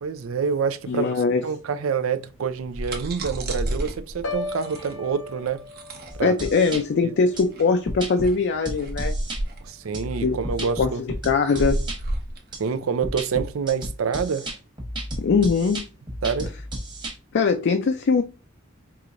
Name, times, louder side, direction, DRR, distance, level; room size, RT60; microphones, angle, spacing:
voice 1, 0.0-1.1 1.4-5.6 6.2-6.3 7.0-7.1 9.6-11.0 12.6-14.5 16.2-16.5, right 6 dB, 85° right, 0.5 m, -27 dB
voice 2, 0.9-1.4 6.2-9.2 10.2-10.4 10.8-11.8 15.2-15.9 17.3-18.2, left 4 dB, 55° left, 0.4 m, -21 dB
sound 1, 2.5-13.9, right 1 dB, 50° right, 0.8 m, -32 dB
Piano, 4.2-8.2 8.6-9.0, left 3 dB, 70° left, 0.8 m, -38 dB
sound 2, 6.1-6.8 7.4-7.5 7.9-8.3 8.7-9.4 9.9-12.0 12.5-12.6 13.0-17.1, right 1 dB, 25° right, 1.1 m, -33 dB
4.7 x 2.9 x 2.5 m
head